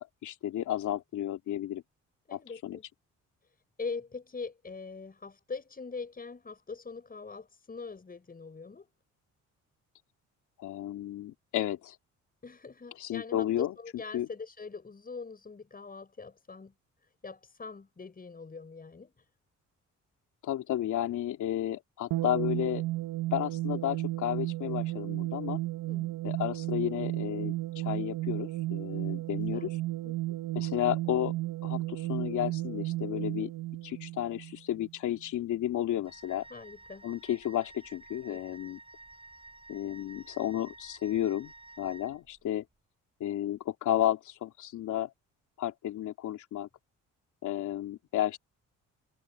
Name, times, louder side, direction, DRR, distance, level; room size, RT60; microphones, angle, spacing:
voice 1, 0.0-1.8 2.3-2.8 10.6-12.0 13.0-13.7 14.1-14.3 20.4-22.8 23.3-25.6 26.2-29.7 30.5-31.3 31.6-33.5 33.8-36.5 37.0-38.8 39.7-42.6 43.2-45.1 45.6-46.7 47.4-48.4, left 12 dB, 80° left, 2.9 m, -32 dB
voice 2, 2.3-2.8 3.8-8.9 12.4-16.7 17.0-19.3 25.8-26.1 29.5-29.7 30.0-30.4 36.5-37.1 38.3-38.4, left 4 dB, 30° left, 6.9 m, -42 dB
sound 1, 22.1-34.9, right 17 dB, 85° right, 1.2 m, -34 dB
Wind instrument woodwind instrument, 36.1-42.2, right 2 dB, 20° right, 6.5 m, -52 dB
cardioid pair, 90°, 30 cm